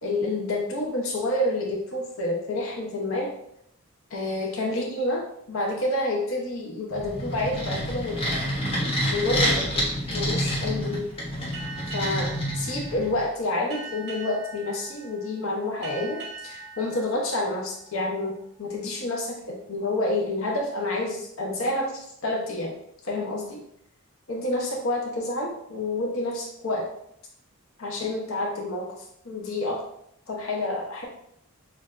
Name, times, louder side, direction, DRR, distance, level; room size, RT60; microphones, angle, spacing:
voice 1, 0.0-3.3 4.1-8.4 9.1-9.9 10.1-11.0 11.9-22.7 23.0-23.6 24.3-26.9 27.8-28.9 29.2-29.8 30.3-31.0, left 2 dB, 65° left, -1 dB, 0.8 m, -29 dB
sound 1, 6.9-13.2, equal, 25° left, 1.2 m, -28 dB
Boat Water vehicle, 11.5-18.6, right 3 dB, 50° right, 1.7 m, -42 dB
6.5 x 2.6 x 2.4 m, 0.73 s
head